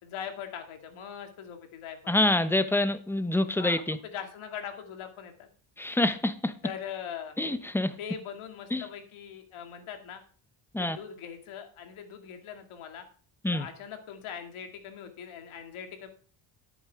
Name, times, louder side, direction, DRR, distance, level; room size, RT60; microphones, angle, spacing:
voice 1, 0.0-2.2 3.5-5.5 6.6-7.4 8.0-10.2 10.8-13.0 13.5-16.1, left 8 dB, 75° left, 2.4 m, -41 dB
voice 2, 2.1-4.0 5.8-6.5 7.4-7.9 8.7-8.8 10.7-11.0 13.4-13.7, left 1 dB, 5° left, 0.8 m, -26 dB
10.5 x 8.7 x 3.5 m
cardioid pair, 105°, 49 cm